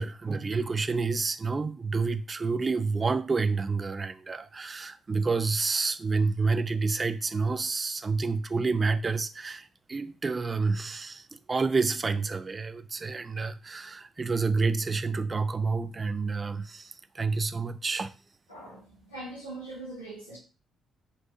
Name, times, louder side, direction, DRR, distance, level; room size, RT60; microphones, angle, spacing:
voice 1, 0.0-18.1, right 4 dB, 30° right, 0.3 m, -29 dB
voice 2, 18.5-20.4, right 2 dB, 90° left, 1.0 m, -41 dB
4.0 x 2.5 x 2.8 m
figure-of-eight pair, 40°, 0 cm